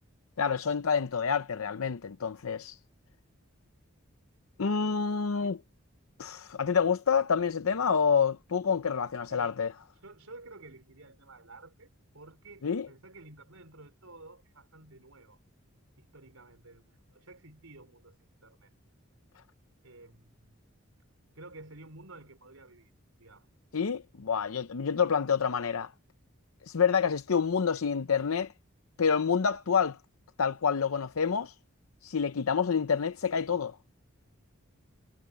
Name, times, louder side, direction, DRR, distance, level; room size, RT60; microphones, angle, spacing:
voice 1, 0.4-2.8 4.6-5.6 6.2-9.7 12.6-12.9 23.7-25.9 26.6-28.5 29.0-30.0 30.4-31.5 32.0-33.8, left 6 dB, 80° left, 0.6 m, -28 dB
voice 2, 5.1-5.5 9.3-9.5 10.0-11.9 12.1-15.4 16.0-18.2 18.4-18.7 19.8-20.6 21.3-22.9 23.2-23.5, right 2 dB, 85° right, 4.5 m, -52 dB
head